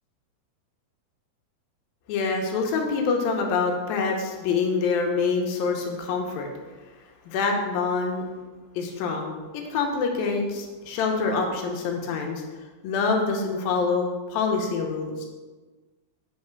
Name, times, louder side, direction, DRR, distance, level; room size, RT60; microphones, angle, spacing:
voice 1, 2.1-6.5 7.3-8.2 8.8-12.4 12.8-15.3, left 4 dB, 85° left, 2 dB, 2.7 m, -26 dB
7.8 x 4.1 x 5.9 m, 1.3 s
omnidirectional pair, 4.1 m